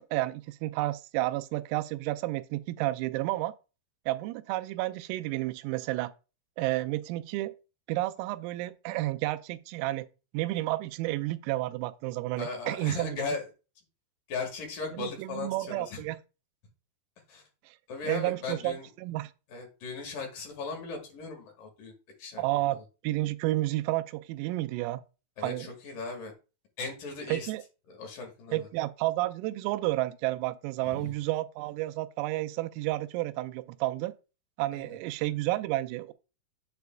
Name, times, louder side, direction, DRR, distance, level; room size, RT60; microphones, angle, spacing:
voice 1, 0.1-3.5 4.1-6.1 6.6-7.5 7.9-10.1 10.3-13.2 14.9-16.2 17.7-17.8 18.0-19.3 22.4-25.0 25.4-25.7 27.3-27.6 28.5-34.1 34.6-36.1, right 17 dB, 90° right, 3.2 m, -31 dB
voice 2, 12.4-13.5 14.3-16.0 17.3-17.4 17.9-18.9 19.5-21.9 22.2-22.4 22.7-22.8 25.4-26.3 26.8-27.5 27.9-28.7 30.8-31.1 34.7-35.0, left 4 dB, 60° left, 2.5 m, -37 dB
8.2 x 7.9 x 2.2 m
omnidirectional pair, 5.9 m